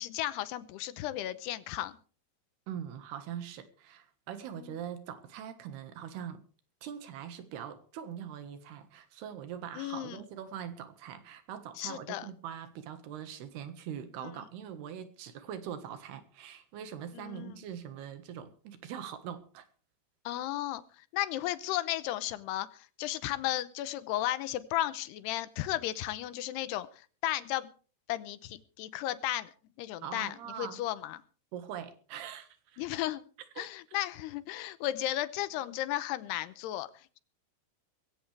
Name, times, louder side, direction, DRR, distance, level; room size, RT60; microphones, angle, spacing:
voice 1, 0.0-2.0 4.5-4.7 9.8-10.2 11.8-12.3 14.2-14.3 17.1-17.5 20.3-20.8 21.1-26.9 27.2-27.7 28.1-29.5 29.8-31.2 32.8-33.2 33.6-36.9, left 14 dB, 80° left, 14 dB, 2.9 m, -34 dB
voice 2, 2.7-6.4 6.8-19.7 30.0-30.8 31.5-32.9 33.6-34.0, right 9 dB, 75° right, 10 dB, 3.5 m, -42 dB
20.0 x 16.5 x 3.3 m, 0.39 s
omnidirectional pair, 4.7 m